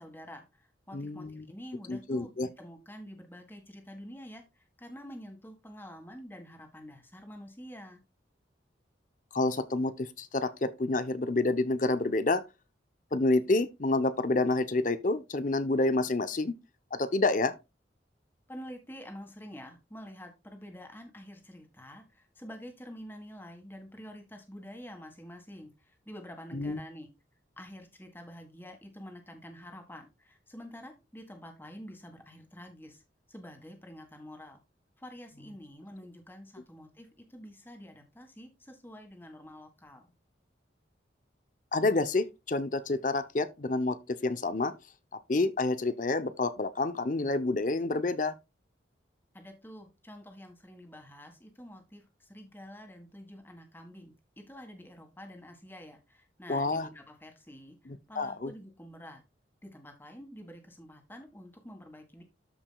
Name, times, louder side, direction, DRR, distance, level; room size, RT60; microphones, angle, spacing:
voice 1, 0.0-8.0 18.5-27.1 27.6-33.0 33.3-34.6 35.0-40.1 49.3-57.8 58.1-59.2 59.6-62.2, equal, 10° left, 1.6 m, -48 dB
voice 2, 0.9-1.4 1.9-2.5 9.3-12.4 13.1-16.5 16.9-17.5 26.5-26.8 41.7-44.7 45.3-48.3 56.5-56.9 57.9-58.5, left 2 dB, 45° left, 0.7 m, -28 dB
13.0 x 5.0 x 2.3 m
head